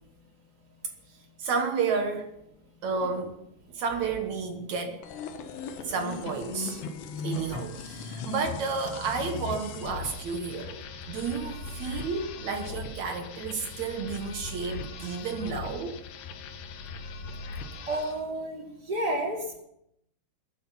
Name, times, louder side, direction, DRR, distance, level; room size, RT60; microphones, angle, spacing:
voice 1, 1.4-2.4 2.8-3.4 3.7-5.0 5.8-6.8 7.2-16.0, right 5 dB, 65° right, 1.9 m, -31 dB
sound 1, 5.0-18.2, left 4 dB, 80° left, 3.4 m, -39 dB
voice 2, 17.9-19.6, right 1 dB, 25° right, 2.8 m, -31 dB
21.5 x 9.7 x 5.7 m
omnidirectional pair, 4.9 m